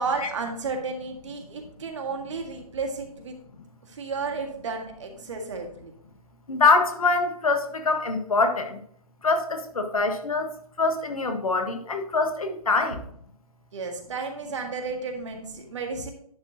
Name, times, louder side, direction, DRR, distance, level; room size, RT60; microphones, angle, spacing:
voice 1, 0.0-3.4 3.8-5.9 13.7-16.1, right 4 dB, 50° right, 4 dB, 1.8 m, -32 dB
voice 2, 6.5-8.8 9.2-13.0, left 3 dB, 65° left, 6 dB, 1.4 m, -24 dB
10.5 x 6.1 x 2.9 m, 0.64 s
figure-of-eight pair, 130°, 19 cm